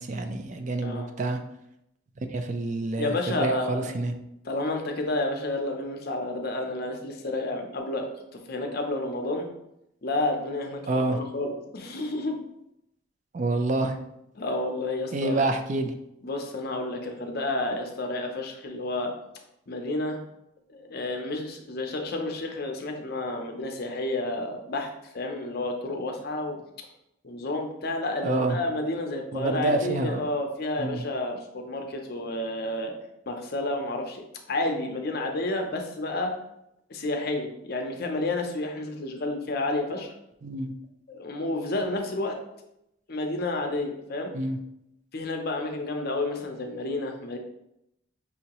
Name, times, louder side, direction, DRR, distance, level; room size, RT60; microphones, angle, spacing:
voice 1, 0.0-1.4 2.3-4.1 10.9-11.2 13.3-14.0 15.1-15.9 28.2-28.6 29.3-30.3 30.8-31.0 40.4-40.7 44.3-44.6, right 2 dB, 40° right, 6 dB, 0.3 m, -27 dB
voice 2, 3.0-3.9 4.4-9.5 10.0-12.4 14.3-15.5 16.2-19.1 19.7-20.2 20.7-24.9 25.1-26.6 27.2-32.9 33.3-36.3 36.9-40.1 41.1-42.4 43.1-44.3 45.1-47.4, left 2 dB, 50° left, 3 dB, 0.6 m, -30 dB
5.5 x 2.8 x 2.9 m, 0.82 s
head